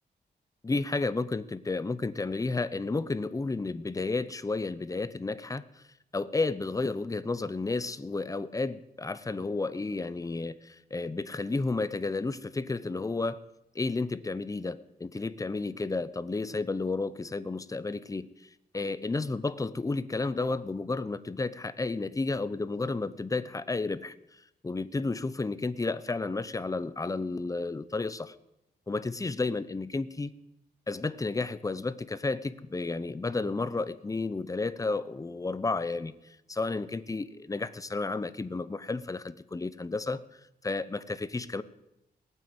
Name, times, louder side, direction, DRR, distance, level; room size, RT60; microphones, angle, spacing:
voice 1, 0.6-5.8 6.1-13.4 13.7-18.3 18.7-24.1 24.6-28.3 28.9-30.3 30.9-36.1 36.5-40.2 40.6-41.6, left 3 dB, 20° left, 15 dB, 0.7 m, -32 dB
18.5 x 9.2 x 8.1 m, 0.85 s
wide cardioid pair, 115°, 17 cm